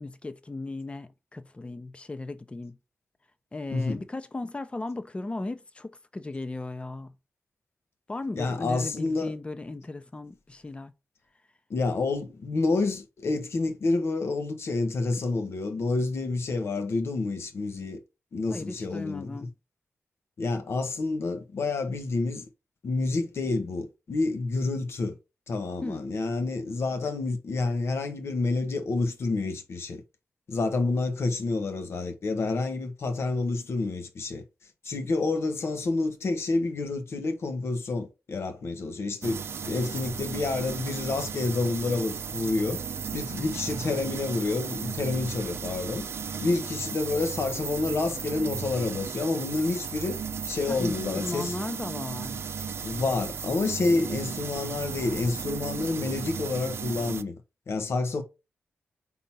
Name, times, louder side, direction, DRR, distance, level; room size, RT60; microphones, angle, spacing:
voice 1, 0.0-2.8 3.5-7.1 8.1-10.9 18.5-19.5 25.8-26.0 50.7-52.4, left 2 dB, 25° left, 0.7 m, -36 dB
voice 2, 3.7-4.0 8.3-9.3 11.7-18.0 18.3-19.5 20.4-22.4 22.8-25.2 25.5-30.0 30.5-34.4 34.8-42.8 43.1-46.1 46.4-50.2 50.5-51.6 52.8-57.3 57.7-58.2, left 3 dB, 70° left, 1.2 m, -29 dB
sound 1, 39.2-57.2, right 6 dB, 65° right, 0.4 m, -35 dB
4.4 x 3.9 x 5.6 m
cardioid pair, 85°, 5 cm